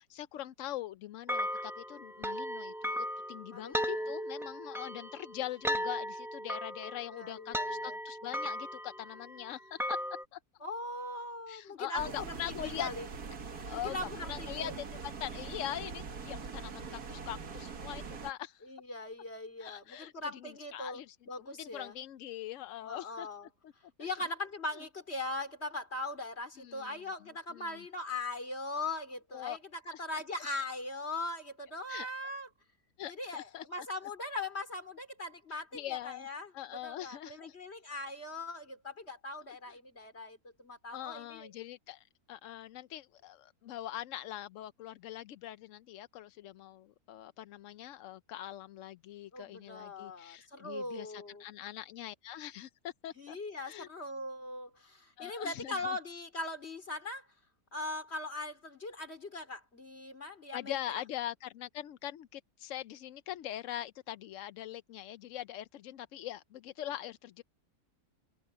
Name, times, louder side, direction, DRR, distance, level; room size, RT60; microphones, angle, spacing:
voice 1, 0.0-10.0 10.3-10.4 11.5-12.9 13.6-13.9 14.3-18.7 19.6-23.3 23.6-23.7 24.0-24.2 24.7-24.8 26.6-27.0 27.5-27.8 29.3-29.6 29.9-30.2 31.9-32.1 33.0-33.9 35.5-36.3 36.5-37.6 39.7-39.8 40.9-53.4 53.7-53.9 55.2-56.0 60.5-67.4, left 12 dB, 65° left, 0.8 m, -42 dB
sound 1, 1.3-10.2, equal, 5° right, 0.4 m, -37 dB
voice 2, 3.5-4.1 7.1-8.0 10.6-13.1 13.7-14.8 18.6-22.0 22.8-23.5 24.0-32.5 33.1-41.5 49.3-51.4 53.2-57.3 57.7-61.0, left 2 dB, 45° left, 4.1 m, -40 dB
sound 2, 12.0-18.3, right 5 dB, 80° right, 2.2 m, -43 dB
omnidirectional pair, 1.6 m